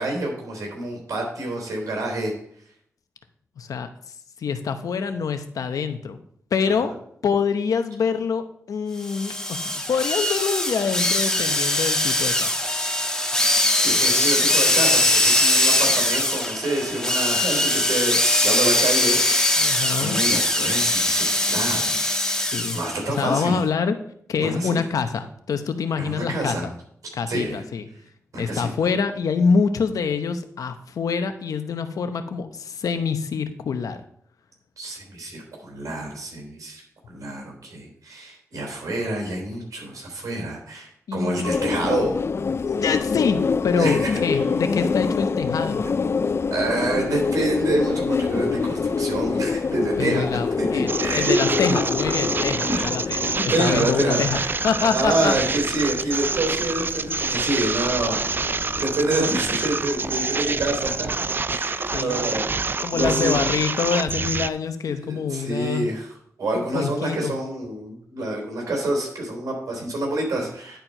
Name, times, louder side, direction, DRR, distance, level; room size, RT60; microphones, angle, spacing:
voice 1, 0.0-2.3 6.7-6.9 13.8-22.4 22.7-23.6 24.4-24.8 26.0-26.7 27.3-27.6 28.3-28.7 34.8-42.1 43.8-44.4 46.5-51.4 52.7-54.6 54.9-63.3 65.0-70.8, right 1 dB, 85° right, 1 dB, 3.5 m, -27 dB
voice 2, 3.6-3.9 4.4-6.2 6.5-6.9 7.2-12.5 19.6-20.2 22.5-22.8 23.2-24.0 24.3-26.6 27.2-27.9 28.4-34.0 41.1-41.5 42.6-45.8 50.0-53.2 53.6-55.3 61.9-62.4 62.8-65.9 66.5-67.3, left 5 dB, 90° left, 9 dB, 0.8 m, -25 dB
sound 1, 9.0-23.0, left 1 dB, 10° left, 1.5 m, -21 dB
sound 2, 41.4-61.0, left 5 dB, 50° left, 0.3 m, -27 dB
sound 3, 50.9-64.5, right 4 dB, 35° right, 0.4 m, -27 dB
10.5 x 4.6 x 5.3 m, 0.67 s
cardioid pair, 55°, 6 cm